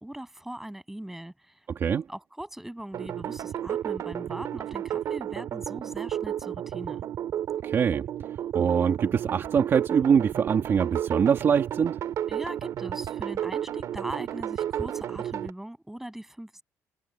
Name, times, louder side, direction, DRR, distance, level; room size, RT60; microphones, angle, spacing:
voice 1, 0.0-1.6 2.1-7.0 12.3-16.6, right 1 dB, 5° right, 7.3 m, -40 dB
sound 1, 2.9-15.5, right 10 dB, 60° right, 2.4 m, -32 dB
voice 2, 7.6-8.0 8.5-12.0, right 7 dB, 40° right, 2.1 m, -23 dB
cardioid pair, 140°, 6 cm